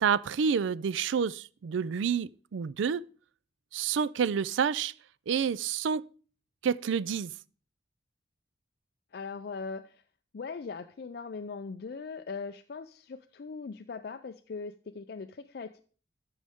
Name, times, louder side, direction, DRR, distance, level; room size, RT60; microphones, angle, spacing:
voice 1, 0.0-3.0 3.7-4.9 5.3-6.1 6.6-7.3, right 7 dB, 80° right, 0.4 m, -28 dB
voice 2, 9.1-10.0 10.3-15.8, left 4 dB, 55° left, 0.4 m, -40 dB
12.5 x 6.3 x 3.6 m
head